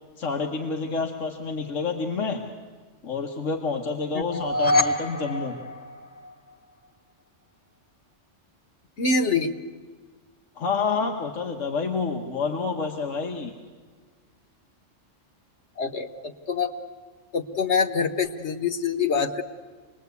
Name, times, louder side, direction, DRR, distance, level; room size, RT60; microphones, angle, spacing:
voice 1, 0.2-2.4 3.0-5.6 10.6-13.5, left 4 dB, 90° left, 2 dB, 1.7 m, -28 dB
sound 1, 4.2-6.5, left 1 dB, 45° left, 1.2 m, -26 dB
voice 2, 9.0-9.5 15.8-16.7 17.3-19.4, left 4 dB, 65° left, 8 dB, 1.4 m, -25 dB
27.0 x 20.5 x 8.3 m, 1.5 s
omnidirectional pair, 1.3 m